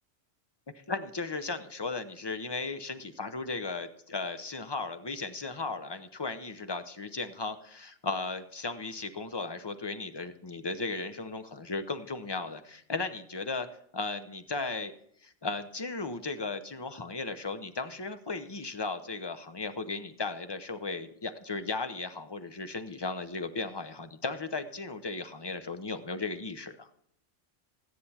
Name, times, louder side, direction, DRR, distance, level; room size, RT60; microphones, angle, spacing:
voice 1, 0.7-13.7 13.9-14.9 15.2-26.9, left 3 dB, 25° left, 10 dB, 0.6 m, -36 dB
14.0 x 9.9 x 4.2 m, 0.69 s
omnidirectional pair, 1.3 m